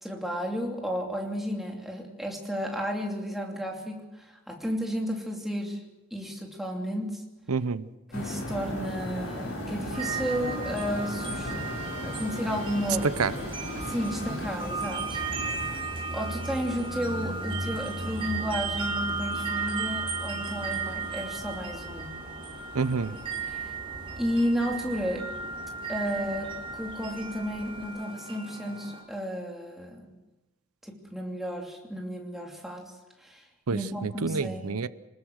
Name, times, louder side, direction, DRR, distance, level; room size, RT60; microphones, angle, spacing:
voice 1, 0.0-5.8 6.1-7.2 8.1-11.7 12.0-13.2 13.8-15.2 16.1-22.1 23.4-23.7 24.2-25.3 25.9-30.1 30.8-32.9 33.2-33.4 33.7-34.8, equal, ahead, 0 dB, 2.8 m, -32 dB
voice 2, 7.5-7.9 13.0-13.3 22.7-23.2 33.7-34.9, right 4 dB, 85° right, 15 dB, 0.8 m, -28 dB
sound 1, 8.1-15.8, left 1 dB, 60° left, 6.5 m, -36 dB
sound 2, 9.9-29.0, right 4 dB, 25° right, 5.1 m, -36 dB
Car passing by, 12.9-27.9, right 1 dB, 45° right, 3.3 m, -41 dB
25.5 x 20.0 x 6.5 m, 1.1 s
head